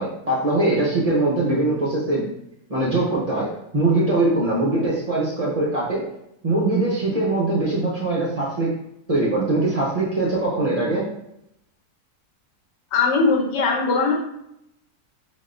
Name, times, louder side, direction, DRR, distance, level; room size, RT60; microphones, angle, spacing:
voice 1, 0.0-2.3 2.7-6.0 6.4-8.7 9.1-11.0, right 2 dB, 60° right, -6 dB, 0.4 m, -22 dB
voice 2, 12.9-14.1, left 4 dB, 85° left, 1 dB, 1.3 m, -20 dB
3.9 x 3.5 x 2.5 m, 0.79 s
omnidirectional pair, 1.8 m